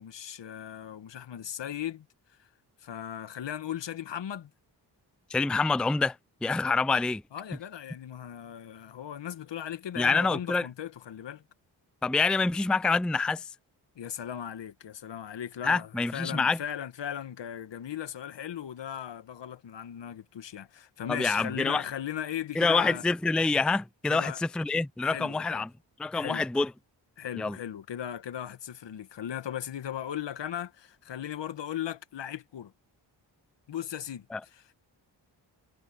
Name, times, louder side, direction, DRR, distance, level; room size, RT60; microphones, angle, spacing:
voice 1, 0.0-2.5 2.8-4.5 7.3-11.4 13.9-23.0 24.1-24.4 25.0-25.6 26.1-26.4 27.2-32.7 33.7-34.8, left 10 dB, 70° left, 1.8 m, -38 dB
voice 2, 5.3-6.1 6.4-7.2 10.0-10.7 12.0-13.4 15.6-16.6 21.1-21.8 22.6-25.7 26.0-26.7 27.4-27.6 34.3-34.4, left 4 dB, ahead, 0.5 m, -26 dB
cardioid pair, 50°, 45 cm